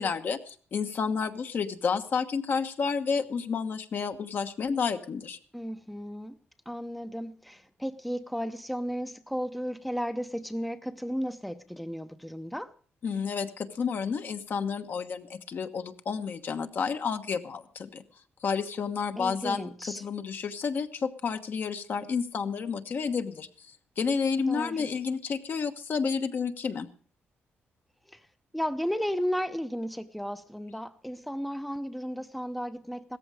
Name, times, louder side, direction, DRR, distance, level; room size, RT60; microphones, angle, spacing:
voice 1, 0.0-5.4 13.0-18.0 18.4-23.5 24.0-26.9, left 5 dB, 55° left, 1.1 m, -30 dB
voice 2, 5.5-6.4 6.7-12.7 19.2-20.0 24.5-24.9 28.1-28.3 28.5-33.2, equal, ahead, 0.7 m, -34 dB
16.5 x 14.0 x 4.9 m
cardioid pair, 110°, 4 cm